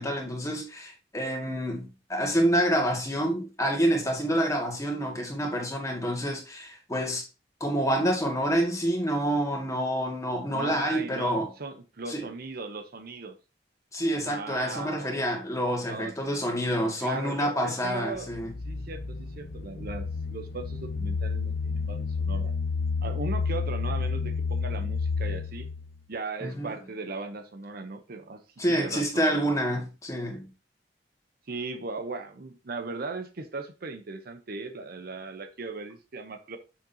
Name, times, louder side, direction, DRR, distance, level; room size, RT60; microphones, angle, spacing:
voice 1, 0.0-7.3 7.6-11.5 12.1-12.2 13.9-18.5 26.4-26.7 28.6-30.4, equal, 20° left, 2.2 m, -27 dB
voice 2, 10.5-13.4 14.2-15.2 15.8-16.1 17.0-18.3 18.7-22.5 23.0-25.7 26.1-28.4 28.7-29.3 31.5-36.6, right 3 dB, 55° right, 0.8 m, -38 dB
sound 1, 18.2-26.0, left 4 dB, 55° left, 0.6 m, -30 dB
7.4 x 6.5 x 2.8 m
head